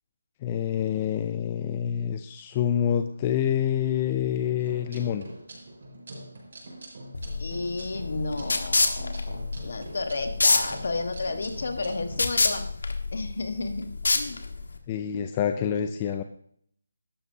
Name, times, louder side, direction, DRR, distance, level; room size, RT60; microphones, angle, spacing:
voice 1, 0.4-5.2 7.7-7.8 14.9-16.2, left 9 dB, 15° left, 8 dB, 0.4 m, -27 dB
sound 1, 4.6-12.2, right 1 dB, 45° right, 4.8 m, -44 dB
sound 2, 7.1-14.8, left 3 dB, 75° left, 1.6 m, -27 dB
voice 2, 7.4-12.7 13.1-13.9 14.1-14.4, left 3 dB, 50° left, 6 dB, 1.4 m, -32 dB
14.0 x 12.5 x 2.8 m, 0.62 s
hypercardioid pair, 175°, 0 cm